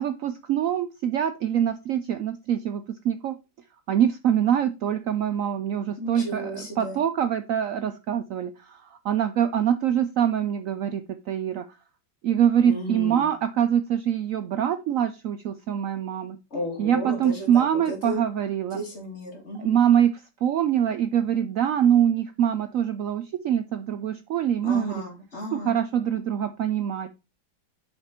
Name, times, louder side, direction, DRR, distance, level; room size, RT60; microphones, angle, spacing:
voice 1, 0.0-3.4 3.9-11.6 12.2-16.4 16.8-18.8 19.6-25.0 25.5-27.1, right 9 dB, 85° right, 9 dB, 0.7 m, -24 dB
voice 2, 6.0-7.0 12.6-13.3 16.5-18.3 18.7-19.8 24.6-25.8, left 1 dB, 35° left, 1 dB, 2.3 m, -34 dB
5.9 x 5.1 x 4.2 m, 0.27 s
omnidirectional pair, 2.0 m